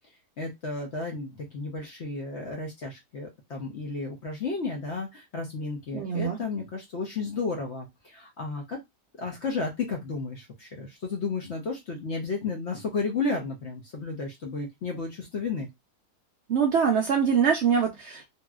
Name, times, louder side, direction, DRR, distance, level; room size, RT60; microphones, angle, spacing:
voice 1, 0.4-8.8 9.2-15.7, left 4 dB, 55° left, 1 dB, 0.8 m, -33 dB
voice 2, 5.9-6.4 16.5-18.3, right 7 dB, 90° right, 2 dB, 0.5 m, -24 dB
3.0 x 2.7 x 2.3 m, 0.18 s
omnidirectional pair, 1.8 m